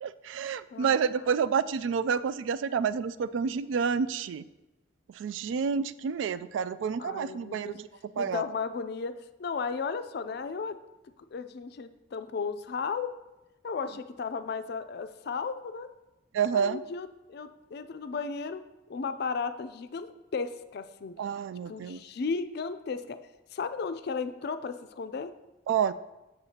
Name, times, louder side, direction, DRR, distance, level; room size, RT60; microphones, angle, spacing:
voice 1, 0.0-4.4 5.2-7.9 8.2-8.4 16.3-16.8 21.2-22.0 25.7-25.9, right 6 dB, 75° right, 15 dB, 0.3 m, -29 dB
voice 2, 0.7-1.2 7.0-7.8 8.2-9.1 9.4-10.8 11.3-13.1 13.6-15.9 16.5-18.6 18.9-21.2 21.7-23.2 23.5-25.3, left 5 dB, 55° left, 11 dB, 0.4 m, -35 dB
8.0 x 6.7 x 2.8 m, 1.0 s
head